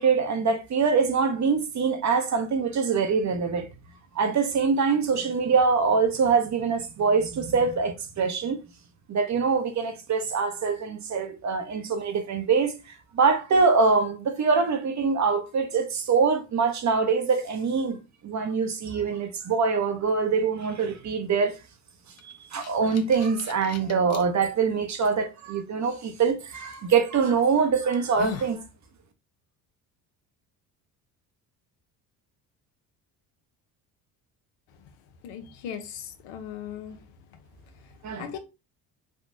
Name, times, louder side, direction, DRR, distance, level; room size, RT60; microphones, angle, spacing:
voice 1, 0.0-3.7 4.1-8.6 9.1-12.7 13.1-21.6 22.2-28.6 38.0-38.4, right 5 dB, 40° right, 0.8 m, -24 dB
sound 1, 22.2-24.2 24.9-25.0 26.7-26.9 27.5-27.6 27.9-28.6, left 5 dB, 35° left, 0.6 m, -39 dB
voice 2, 35.2-37.0 37.8-38.4, left 8 dB, 75° left, 0.8 m, -38 dB
3.6 x 2.2 x 2.6 m
hypercardioid pair, 65°, 45 cm